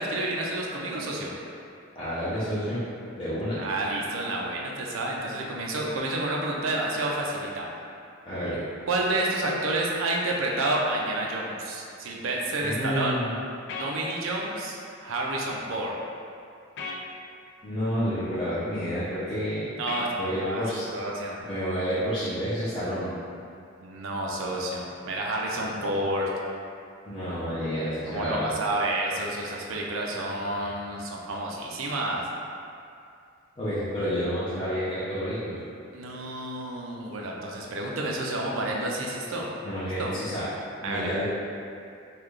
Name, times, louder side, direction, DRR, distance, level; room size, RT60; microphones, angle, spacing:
voice 1, 0.0-1.3 3.6-7.7 8.9-13.1 13.8-16.0 19.8-20.6 20.9-21.4 23.8-26.3 28.1-32.2 35.9-39.5 40.0-40.1 40.8-41.1, right 2 dB, 75° right, -2 dB, 0.4 m, -29 dB
voice 2, 2.0-2.8 3.2-3.6 8.2-8.6 12.6-13.4 17.6-19.7 20.2-20.8 21.4-23.1 27.1-28.5 33.6-35.6 39.6-40.4 40.8-41.2, equal, 25° left, -15 dB, 0.7 m, -29 dB
sound 1, 10.6-10.8 13.7-13.9 16.8-17.0 19.9-20.1, left 4 dB, 60° left, 0.4 m, -34 dB
3.8 x 2.3 x 3.2 m, 2.5 s
head